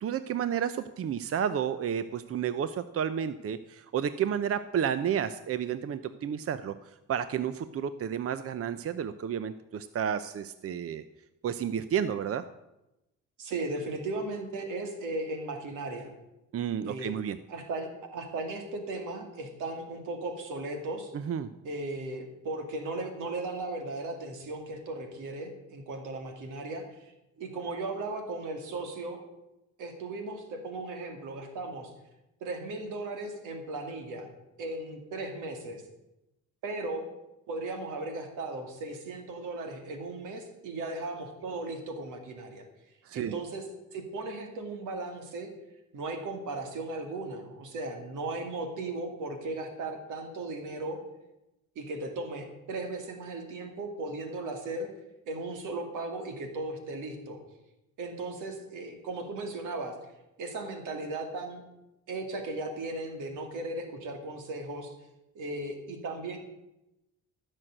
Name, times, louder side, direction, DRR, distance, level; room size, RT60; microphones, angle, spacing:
voice 1, 0.0-11.0 11.4-12.4 16.5-17.4 21.1-21.5 43.0-43.4, right 8 dB, 50° right, 13 dB, 0.7 m, -31 dB
voice 2, 13.4-16.1 16.8-17.1 17.5-21.1 21.6-27.1 27.4-29.2 29.8-31.9 32.4-34.3 34.6-35.8 36.6-37.1 37.5-42.7 43.1-43.6 43.9-45.5 45.9-51.0 51.8-54.9 55.3-57.4 58.0-59.9 60.4-61.6 62.1-64.9 65.3-66.4, right 2 dB, 90° right, 5 dB, 2.5 m, -36 dB
15.0 x 6.5 x 7.8 m, 0.93 s
cardioid pair, 90°, 30 cm